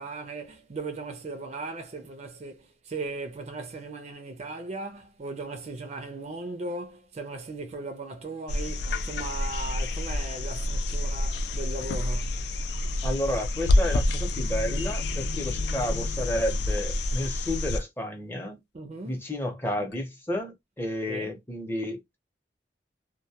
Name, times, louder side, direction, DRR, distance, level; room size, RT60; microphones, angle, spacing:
voice 1, 0.0-12.4 18.7-19.2 21.1-21.3, right 3 dB, 35° right, 0.4 m, -37 dB
sound 1, 8.5-17.8 19.9-20.0, left 1 dB, 65° left, 0.3 m, -28 dB
voice 2, 13.0-18.6 19.0-22.2, left 1 dB, 10° left, 0.6 m, -31 dB
2.1 x 2.1 x 2.7 m
head